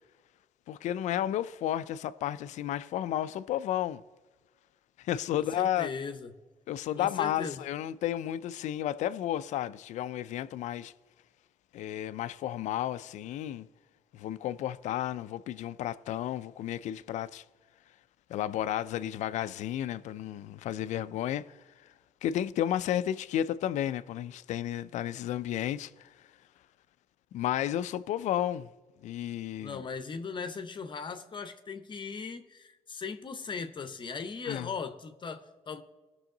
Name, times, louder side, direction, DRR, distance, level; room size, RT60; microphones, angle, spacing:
voice 1, 0.7-4.0 5.0-5.9 6.7-10.9 11.7-13.7 14.1-17.4 18.3-21.6 22.2-26.1 27.3-28.7 29.0-29.8 34.5-34.7, left 11 dB, 70° left, 0.4 m, -32 dB
voice 2, 5.3-6.3 7.0-7.6 29.6-35.8, left 5 dB, 40° left, 0.8 m, -38 dB
17.5 x 6.3 x 3.9 m
cardioid pair, 80°, 13 cm